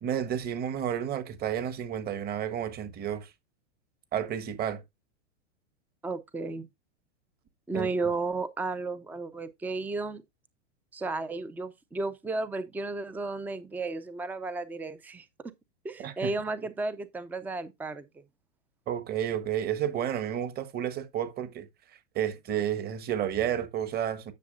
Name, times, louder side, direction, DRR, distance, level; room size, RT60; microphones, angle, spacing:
voice 1, 0.0-3.3 4.1-4.8 7.7-7.9 16.0-16.3 18.9-21.7 22.1-24.3, right 10 dB, 25° right, 1.3 m, -31 dB
voice 2, 6.0-6.7 7.7-10.2 10.9-15.3 15.8-18.2, right 3 dB, 5° right, 0.5 m, -33 dB
10.5 x 6.5 x 2.4 m
hypercardioid pair, 125°, 36 cm